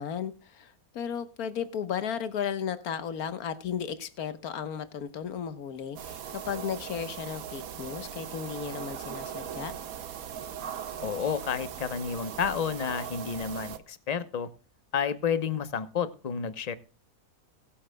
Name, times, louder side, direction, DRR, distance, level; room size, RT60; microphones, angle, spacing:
voice 1, 0.0-9.7, left 8 dB, 85° left, 12 dB, 1.6 m, -35 dB
sound 1, 6.0-13.8, right 8 dB, 70° right, 1.3 m, -39 dB
voice 2, 11.0-14.5 14.9-16.7, left 7 dB, 35° left, 13 dB, 0.8 m, -30 dB
21.0 x 8.7 x 2.2 m, 0.34 s
omnidirectional pair, 1.5 m